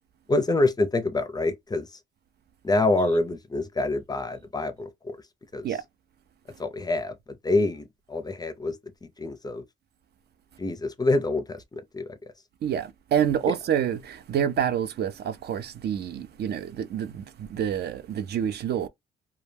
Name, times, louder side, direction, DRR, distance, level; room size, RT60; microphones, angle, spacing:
voice 1, 0.3-2.0 2.6-5.2 5.5-5.7 6.6-9.6 10.6-12.2 13.5-13.6, left 2 dB, 20° left, 0.5 m, -26 dB
voice 2, 12.6-17.2 17.5-18.9, right 9 dB, 55° right, 0.4 m, -27 dB
2.2 x 2.1 x 3.2 m
cardioid pair, 90°, 20 cm